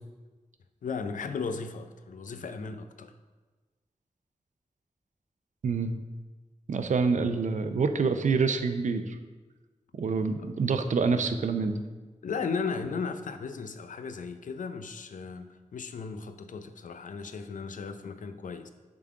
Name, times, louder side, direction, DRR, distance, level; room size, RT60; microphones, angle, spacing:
voice 1, 0.8-3.1 10.4-10.5 12.2-18.7, left 5 dB, 85° left, 9 dB, 0.5 m, -36 dB
voice 2, 6.7-9.1 9.9-11.8, right 4 dB, 70° right, 8 dB, 0.5 m, -26 dB
7.2 x 3.9 x 4.6 m, 1.3 s
wide cardioid pair, 110°, 13 cm